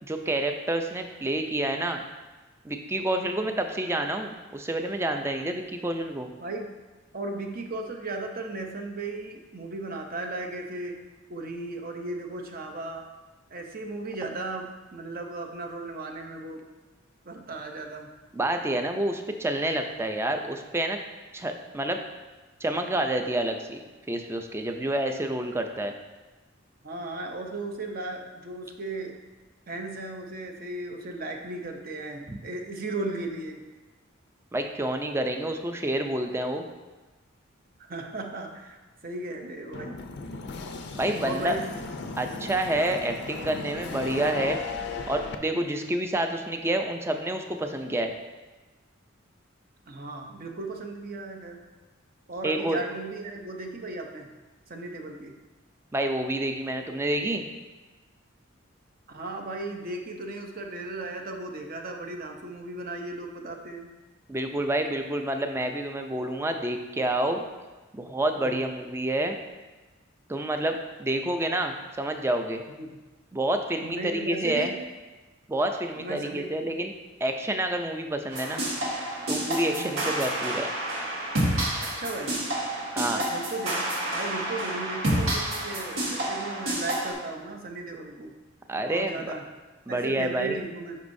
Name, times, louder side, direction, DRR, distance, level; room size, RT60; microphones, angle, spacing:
voice 1, 0.0-2.0 2.6-6.3 18.3-21.0 21.3-22.0 22.6-23.8 24.1-25.9 32.3-32.4 34.5-36.7 40.9-41.6 42.2-44.6 45.1-48.1 52.4-52.8 55.9-57.5 64.3-67.5 67.9-69.4 70.3-72.6 73.3-74.7 75.5-76.9 77.2-78.6 79.3-80.7 83.0-83.2 88.7-89.4 89.9-90.6, right 1 dB, 10° right, 5 dB, 0.4 m, -28 dB
voice 2, 6.4-6.7 7.1-11.0 11.3-13.0 13.5-16.6 17.3-18.1 26.8-29.2 29.7-33.6 37.8-40.0 41.2-41.6 45.5-46.0 49.9-51.6 52.3-54.3 54.7-55.3 59.1-63.9 68.4-68.6 72.8-72.9 73.8-74.7 76.0-76.8 79.7-80.1 81.8-82.3 83.1-88.3 88.9-89.4 89.9-91.0, right 2 dB, 45° right, 3 dB, 0.7 m, -36 dB
sound 1, 39.7-45.3, left 4 dB, 55° left, 0.5 m, -36 dB
sound 2, 78.3-87.1, right 1 dB, 80° right, 1.5 m, -29 dB
8.2 x 5.4 x 2.6 m, 1.2 s
head